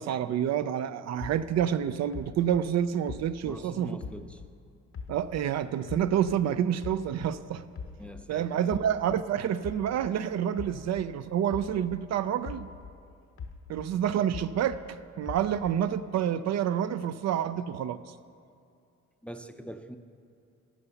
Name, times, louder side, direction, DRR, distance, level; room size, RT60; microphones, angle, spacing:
voice 1, 0.0-4.0 5.1-7.6 8.3-12.7 13.7-18.1, right 9 dB, 60° right, 13 dB, 0.5 m, -28 dB
sound 1, 1.2-4.6 4.9-7.4 7.8-12.1 12.4-14.9 15.3-16.0, left 5 dB, 45° left, 0.8 m, -43 dB
voice 2, 3.5-4.4 8.0-8.9 19.2-20.0, equal, 5° left, 8 dB, 0.5 m, -43 dB
11.5 x 6.8 x 7.0 m, 2.5 s
cardioid pair, 90°, 30 cm